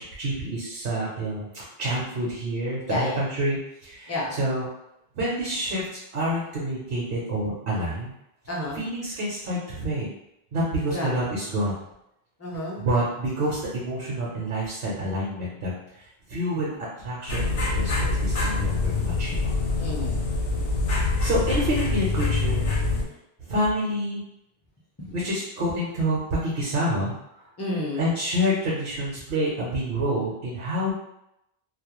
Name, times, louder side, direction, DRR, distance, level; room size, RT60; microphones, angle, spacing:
voice 1, 0.0-4.7 5.1-5.9 6.1-8.1 8.7-10.1 10.5-11.8 12.8-16.0 16.3-16.7 17.0-19.5 21.2-22.7 23.5-24.2 25.1-27.1 27.9-30.9, equal, 70° right, -5 dB, 0.9 m, -28 dB
voice 2, 2.9-3.2 4.1-4.4 8.5-8.8 10.9-11.2 12.4-12.8 19.8-20.2 27.6-28.1, left 1 dB, 20° left, -4 dB, 0.4 m, -30 dB
sound 1, 17.3-23.0, left 3 dB, 70° left, 0.8 m, -25 dB
2.3 x 2.1 x 3.0 m, 0.84 s
omnidirectional pair, 1.0 m